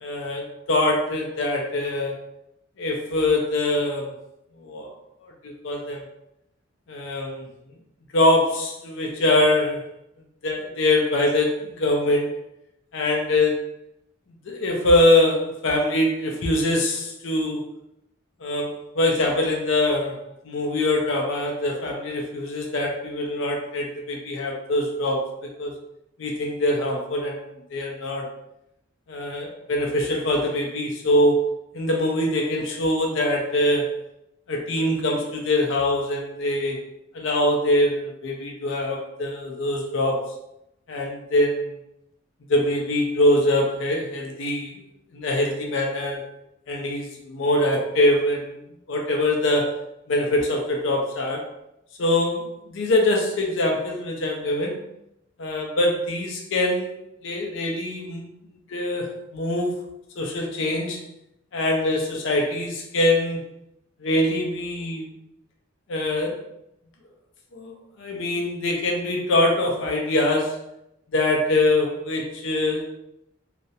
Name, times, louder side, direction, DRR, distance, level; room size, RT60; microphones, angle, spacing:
voice 1, 0.0-2.1 2.8-4.1 4.6-4.9 5.2-6.0 6.9-7.5 8.1-9.8 10.4-12.3 12.9-13.6 14.5-17.6 18.4-25.7 26.2-27.4 27.7-28.3 29.1-31.4 31.7-33.9 34.5-36.8 37.1-40.3 40.9-41.7 42.5-44.8 45.1-46.2 46.7-48.6 48.9-49.8 50.1-51.5 52.0-54.8 55.4-57.0 57.2-58.3 58.7-59.8 60.2-61.0 61.5-63.5 64.0-65.1 65.9-66.4 67.5-70.6 71.1-72.9, left 1 dB, 65° left, 0 dB, 0.4 m, -23 dB
2.3 x 2.0 x 2.7 m, 0.81 s
head